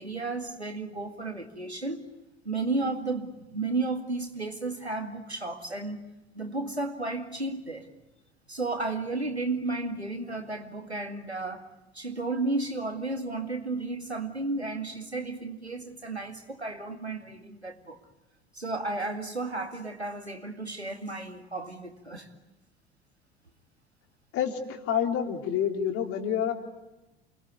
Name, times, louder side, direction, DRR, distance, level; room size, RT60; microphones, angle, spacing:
voice 1, 0.0-2.0 2.4-6.0 6.3-7.9 8.5-11.7 11.9-18.0 18.5-22.3, right 3 dB, 90° right, 5 dB, 2.2 m, -33 dB
voice 2, 24.3-26.5, left 8 dB, 45° left, 3 dB, 3.6 m, -28 dB
29.0 x 20.5 x 9.6 m, 0.99 s
figure-of-eight pair, 70°, 32 cm